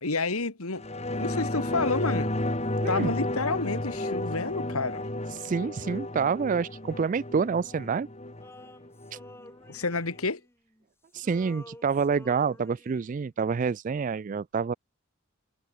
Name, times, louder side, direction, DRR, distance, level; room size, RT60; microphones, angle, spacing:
voice 1, 0.0-0.8 1.1-2.3 2.9-5.1 9.7-10.4, left 3 dB, 80° left, 2.3 m, -29 dB
sound 1, 0.8-9.8 10.1-10.2, left 1 dB, 30° left, 3.0 m, -32 dB
voice 2, 5.3-8.1 9.1-9.2 11.1-14.7, right 5 dB, 35° right, 0.3 m, -28 dB
Male singing, 8.4-10.9 11.1-13.3, left 1 dB, 10° left, 2.8 m, -51 dB
head